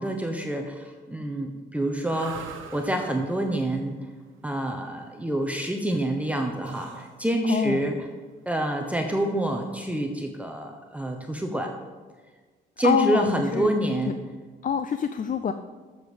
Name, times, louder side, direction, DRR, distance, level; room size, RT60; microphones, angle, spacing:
voice 1, 0.0-3.9 4.4-8.0 8.5-11.7 12.8-14.2, right 1 dB, 5° right, 3 dB, 1.1 m, -27 dB
sound 1, 2.0-10.0, right 7 dB, 90° right, 1.1 m, -46 dB
voice 2, 7.5-7.9 12.8-13.7 14.6-15.5, left 7 dB, 45° left, 9 dB, 0.6 m, -25 dB
12.5 x 7.3 x 5.1 m, 1.4 s
cardioid pair, 90°, 20 cm